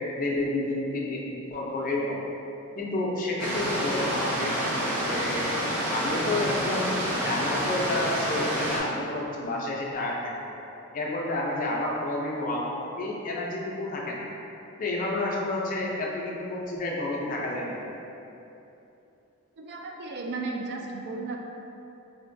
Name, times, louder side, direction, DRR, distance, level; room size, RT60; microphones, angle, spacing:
voice 1, 0.1-2.2 2.8-4.6 5.0-5.5 5.9-10.3 10.9-14.3 14.8-17.8, left 2 dB, 40° left, -2 dB, 0.4 m, -30 dB
sound 1, 3.4-8.8, equal, 80° right, 0.6 m, -28 dB
voice 2, 19.6-21.4, right 3 dB, 50° right, 1 dB, 0.3 m, -34 dB
3.8 x 2.1 x 2.5 m, 2.9 s
head